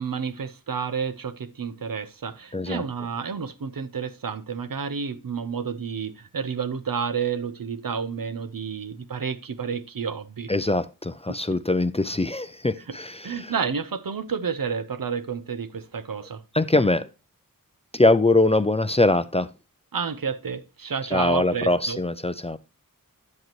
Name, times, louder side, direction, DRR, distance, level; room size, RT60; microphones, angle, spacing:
voice 1, 0.0-10.5 11.3-11.6 12.8-13.0 13.2-16.4 19.9-22.0, right 6 dB, 70° right, 0.8 m, -30 dB
voice 2, 10.5-13.5 16.5-17.1 17.9-19.5 21.1-22.6, left 2 dB, 20° left, 0.5 m, -22 dB
9.4 x 7.8 x 2.9 m
wide cardioid pair, 80°, 35 cm